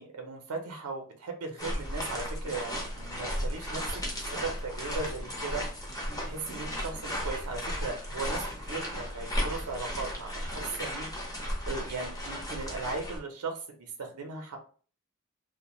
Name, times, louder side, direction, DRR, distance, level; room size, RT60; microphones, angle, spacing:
voice 1, 0.0-5.6 5.9-11.1 11.7-14.6, right 3 dB, 85° right, 4 dB, 0.5 m, -38 dB
sound 1, 1.6-13.2, equal, 15° left, 0.7 m, -35 dB
2.4 x 2.1 x 2.9 m, 0.41 s
head